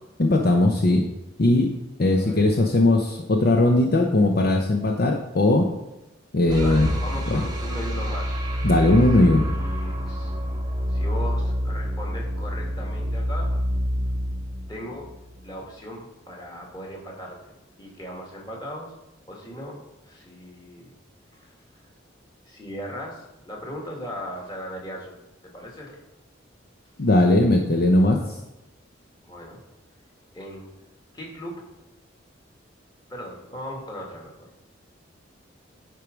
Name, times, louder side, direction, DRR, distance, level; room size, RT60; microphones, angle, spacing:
voice 1, 0.2-1.1 1.4-1.7 2.0-5.7 6.3-6.9 7.3-7.4 8.6-9.5 27.0-28.2, left 2 dB, 55° left, 2 dB, 0.7 m, -19 dB
voice 2, 2.1-2.4 6.6-8.3 9.2-10.4 10.9-13.6 14.7-15.1 15.4-18.9 19.3-20.9 21.3-21.4 21.7-21.8 22.5-25.1 25.5-26.0 29.2-29.6 30.3-30.7 31.1-31.6 33.1-34.5, equal, 25° left, -2 dB, 2.0 m, -38 dB
sound 1, 6.5-15.6, equal, 20° right, 1.1 m, -27 dB
10.5 x 4.6 x 5.1 m, 0.95 s
head